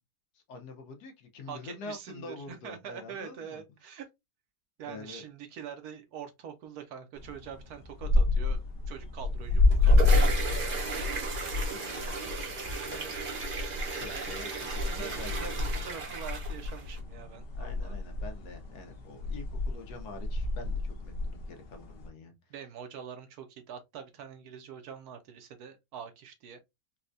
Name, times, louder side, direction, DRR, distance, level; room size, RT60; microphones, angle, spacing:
voice 1, 0.3-3.6 4.8-5.2 11.7-13.2 14.0-15.8 17.6-22.5, left 3 dB, 70° left, 1.3 m, -46 dB
voice 2, 1.5-4.1 4.8-11.2 14.1-17.9 22.5-26.6, right 7 dB, 70° right, 1.1 m, -45 dB
sound 1, 7.2-22.1, left 2 dB, 50° left, 0.7 m, -29 dB
sound 2, 9.5-17.0, right 4 dB, 45° right, 0.7 m, -36 dB
4.2 x 2.2 x 2.5 m
omnidirectional pair, 1.8 m